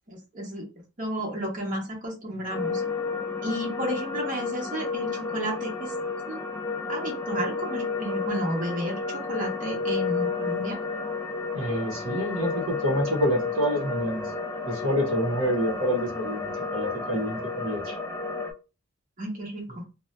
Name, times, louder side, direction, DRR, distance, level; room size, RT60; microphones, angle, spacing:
voice 1, 0.1-0.7 1.0-2.8 3.4-5.9 6.3-6.4 6.9-9.0 9.3-10.8 19.2-19.9, equal, 40° right, 1.1 m, -32 dB
sound 1, 2.5-18.5, left 4 dB, 10° left, 0.3 m, -31 dB
voice 2, 11.5-14.3 14.6-18.0, equal, 80° right, 1.0 m, -27 dB
2.6 x 2.3 x 3.2 m
head